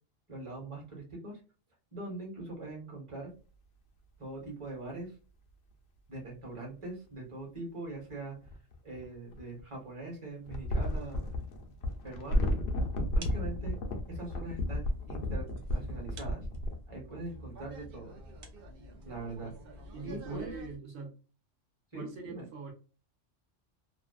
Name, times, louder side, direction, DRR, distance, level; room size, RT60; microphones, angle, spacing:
voice 1, 0.3-1.4 1.9-3.3 4.2-5.1 6.1-8.4 8.8-11.2 12.0-12.6 13.1-13.7 14.1-16.5 16.9-18.2 19.0-19.5 20.0-20.5 21.9-22.5, right 2 dB, 25° right, -1 dB, 1.1 m, -42 dB
sound 1, 6.2-6.3 8.4-9.6 10.4-16.8, left 1 dB, 60° left, 0.8 m, -32 dB
sound 2, 12.4-20.8, equal, 55° right, 0.8 m, -49 dB
voice 2, 19.9-21.1 21.9-22.7, right 4 dB, 75° right, 1 dB, 1.1 m, -42 dB
2.6 x 2.3 x 2.3 m, 0.35 s
omnidirectional pair, 1.3 m